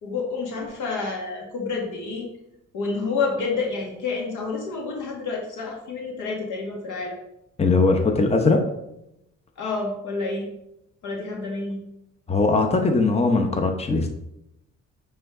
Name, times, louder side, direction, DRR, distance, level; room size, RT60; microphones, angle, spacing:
voice 1, 0.0-2.3 2.7-7.2 9.6-10.5 11.0-11.8, left 4 dB, 85° left, 0 dB, 1.8 m, -29 dB
voice 2, 7.6-8.6 12.3-14.1, left 3 dB, 20° left, 4 dB, 0.8 m, -20 dB
8.5 x 3.5 x 3.6 m, 0.84 s
cardioid pair, 90°, 30 cm